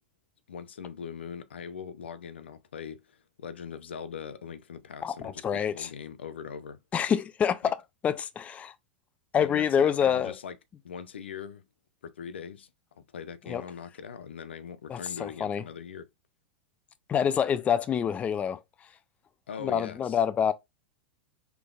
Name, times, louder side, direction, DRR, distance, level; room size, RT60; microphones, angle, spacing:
voice 1, 0.5-6.8 7.6-7.7 9.4-10.6 10.8-11.6 12.0-12.7 13.0-16.1 19.5-20.2, left 7 dB, 90° left, 0.5 m, -41 dB
voice 2, 5.0-5.9 6.9-7.8 8.0-8.7 9.3-10.3 13.5-13.6 14.9-15.6 17.1-18.6 19.6-20.5, left 8 dB, 25° left, 0.4 m, -26 dB
3.7 x 3.4 x 2.4 m
hypercardioid pair, 105°, 6 cm